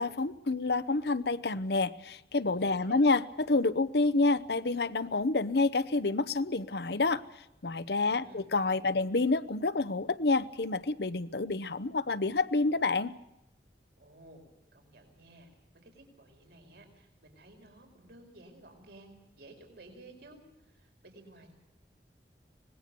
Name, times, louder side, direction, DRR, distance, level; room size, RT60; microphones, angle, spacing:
voice 1, 0.0-3.2 3.5-7.2 7.6-13.1, left 3 dB, 70° left, 14 dB, 0.9 m, -28 dB
voice 2, 2.6-3.1 8.0-9.0 14.0-14.4 14.7-21.5, right 2 dB, 70° right, 3 dB, 4.9 m, -55 dB
25.0 x 19.5 x 6.9 m, 0.87 s
head